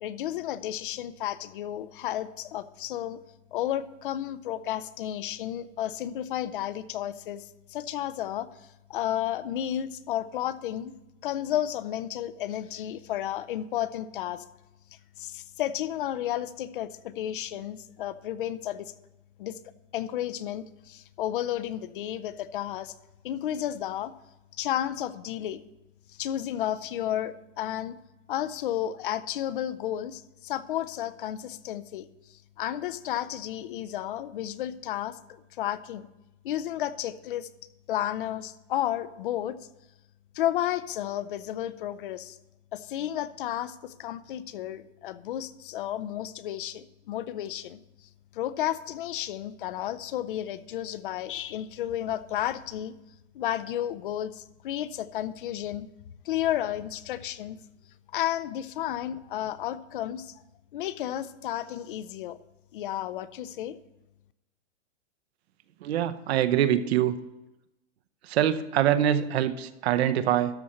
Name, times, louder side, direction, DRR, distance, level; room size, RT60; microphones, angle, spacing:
voice 1, 0.0-3.2 3.5-8.5 8.9-10.9 11.2-14.4 15.2-18.9 19.4-19.6 19.9-22.9 23.2-24.1 24.6-25.6 26.1-28.0 28.3-36.1 36.4-37.5 37.9-39.6 40.3-42.4 42.7-47.8 48.3-52.9 53.3-55.9 56.2-57.6 58.1-60.3 60.7-62.4 62.7-63.8, left 12 dB, 45° left, 15 dB, 0.5 m, -32 dB
voice 2, 65.8-67.2 68.3-70.6, right 10 dB, 60° right, 10 dB, 0.8 m, -24 dB
13.0 x 4.3 x 6.5 m, 0.97 s
supercardioid pair, 175°, 36 cm